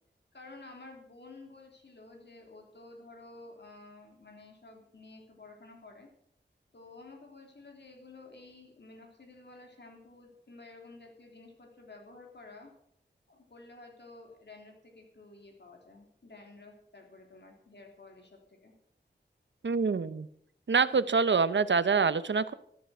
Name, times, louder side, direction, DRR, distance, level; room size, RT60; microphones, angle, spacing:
voice 1, 0.3-6.1 6.7-12.7 13.3-18.7, left 3 dB, 70° left, 1 dB, 3.5 m, -52 dB
voice 2, 19.6-20.3 20.7-22.5, right 5 dB, 85° right, 14 dB, 0.8 m, -26 dB
13.5 x 13.0 x 6.1 m, 0.67 s
wide cardioid pair, 70°, 18 cm